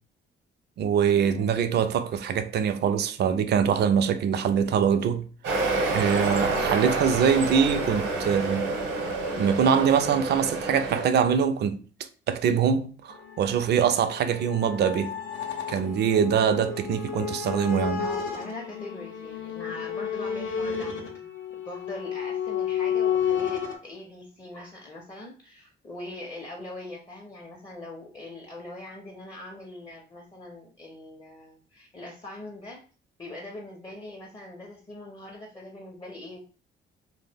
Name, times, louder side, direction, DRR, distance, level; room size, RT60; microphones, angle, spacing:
voice 1, 0.8-5.3 5.9-8.7 9.4-11.8 12.3-15.2 15.7-18.1, right 7 dB, 55° right, 0.4 m, -23 dB
sound 1, 5.4-11.0, right 3 dB, 90° right, 0.8 m, -28 dB
sound 2, 13.1-23.8, left 7 dB, 85° left, 0.6 m, -32 dB
voice 2, 18.0-32.8 33.2-36.4, left 2 dB, 20° left, 0.5 m, -42 dB
2.1 x 2.1 x 3.3 m
cardioid pair, 90°, 20 cm